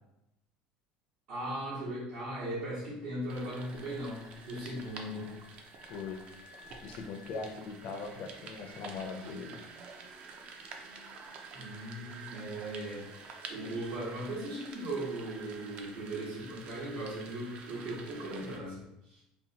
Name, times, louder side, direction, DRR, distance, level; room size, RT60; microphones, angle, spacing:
voice 1, 1.3-5.3 11.5-19.2, right 1 dB, 75° right, -11 dB, 1.2 m, -38 dB
sound 1, 3.3-18.6, right 4 dB, 45° right, 0.4 m, -49 dB
voice 2, 5.9-6.2 6.8-9.6, left 4 dB, 55° left, 3 dB, 0.4 m, -40 dB
2.8 x 2.1 x 2.8 m, 0.87 s
cardioid pair, 135°, 3 cm